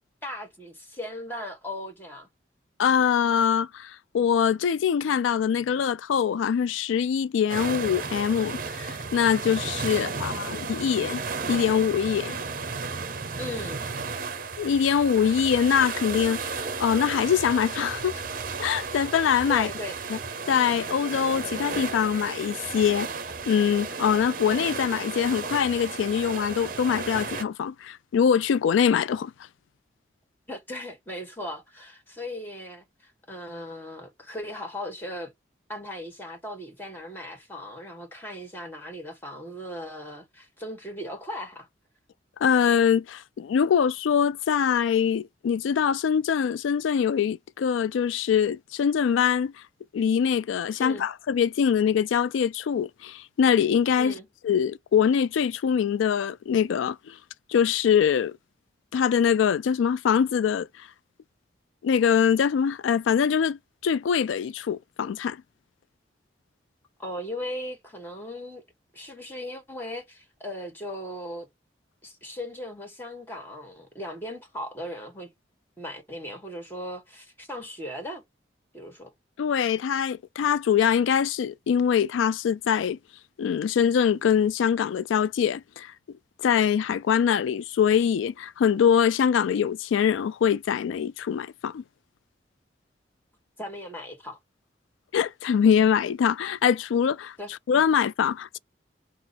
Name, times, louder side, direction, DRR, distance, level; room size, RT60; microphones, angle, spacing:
voice 1, 0.2-2.3 9.9-10.5 13.4-13.8 19.5-20.0 30.5-35.3 35.7-41.7 50.8-51.1 54.0-54.3 67.0-68.6 68.9-71.5 72.0-75.3 75.8-78.2 78.7-79.1 93.6-94.4 97.4-97.5, left 1 dB, 10° left, 1.4 m, -38 dB
voice 2, 2.8-11.2 11.5-12.4 14.6-18.2 18.6-19.7 20.1-20.2 20.5-23.1 23.5-29.3 42.4-49.5 49.9-54.1 54.4-57.2 57.5-58.4 58.9-60.9 61.8-65.4 79.4-83.0 83.4-85.9 86.4-91.8 95.1-97.3 97.7-98.6, left 7 dB, 90° left, 0.3 m, -23 dB
sound 1, 7.5-27.4, right 4 dB, 45° right, 0.7 m, -34 dB
5.9 x 2.0 x 4.2 m
head